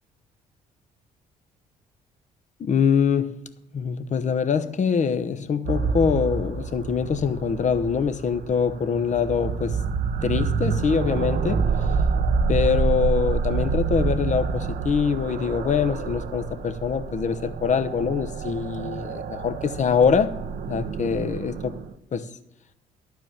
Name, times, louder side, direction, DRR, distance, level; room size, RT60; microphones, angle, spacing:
voice 1, 2.6-3.3 3.7-9.8 10.2-11.6 12.5-20.4 20.7-21.7 22.1-22.3, left 6 dB, 45° left, 0.9 m, -24 dB
sound 1, 5.7-21.9, right 5 dB, 60° right, 0.8 m, -27 dB
12.0 x 4.7 x 7.6 m
hypercardioid pair, 55°, 17 cm